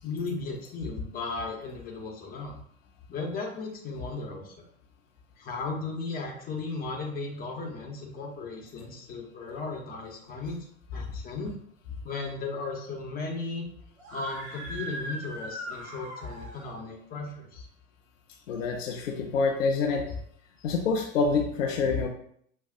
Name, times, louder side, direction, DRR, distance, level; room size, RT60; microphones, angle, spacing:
voice 1, 0.0-2.6 3.1-4.5 5.4-10.6 10.9-11.5 12.0-13.6 14.1-17.7, left 3 dB, 20° left, 0 dB, 1.0 m, -36 dB
Screaming, 14.0-16.8, right 1 dB, 65° right, 1.7 m, -39 dB
voice 2, 18.5-20.0 20.6-22.1, left 4 dB, 65° left, 2 dB, 0.7 m, -26 dB
6.4 x 2.4 x 2.4 m, 0.65 s
figure-of-eight pair, 85°, 42 cm